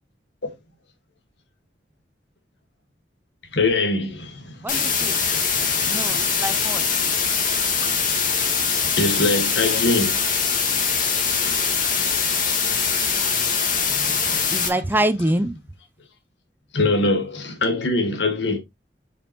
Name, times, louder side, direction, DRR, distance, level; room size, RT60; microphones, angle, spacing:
voice 1, 3.5-6.5 7.8-7.9 8.8-10.2 13.9-14.5 16.7-18.6, left 2 dB, 90° left, 1.7 m, -24 dB
voice 2, 4.6-5.2 5.9-6.8 14.5-15.6, right 1 dB, 10° right, 0.5 m, -25 dB
sound 1, 4.7-14.7, left 5 dB, 50° left, 1.9 m, -22 dB
7.2 x 5.1 x 3.0 m
head